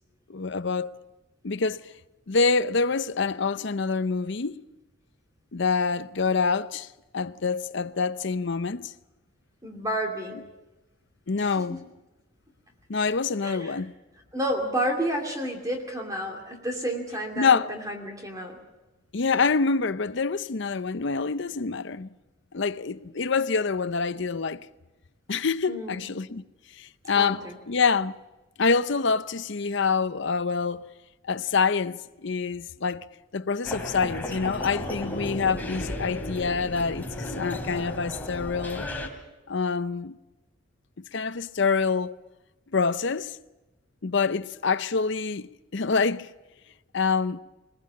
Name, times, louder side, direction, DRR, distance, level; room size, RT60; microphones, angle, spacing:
voice 1, 0.3-0.9 1.4-1.8 2.3-4.6 5.5-6.9 7.1-8.9 11.3-11.8 12.9-13.9 17.4-17.7 19.1-22.1 22.5-24.7 25.3-26.4 26.8-28.2 28.6-30.9 31.3-33.1 33.3-38.9 39.5-40.2 41.1-42.2 42.7-43.3 44.0-46.3 46.9-47.4, left 4 dB, 60° left, 0.6 m, -26 dB
voice 2, 9.6-10.4 11.4-11.8 13.4-13.8 14.3-18.6 25.7-26.0 27.2-27.6 34.9-35.0, right 1 dB, 15° right, 2.6 m, -31 dB
sound 1, 33.6-39.1, left 1 dB, 10° left, 2.8 m, -34 dB
21.0 x 21.0 x 7.5 m
head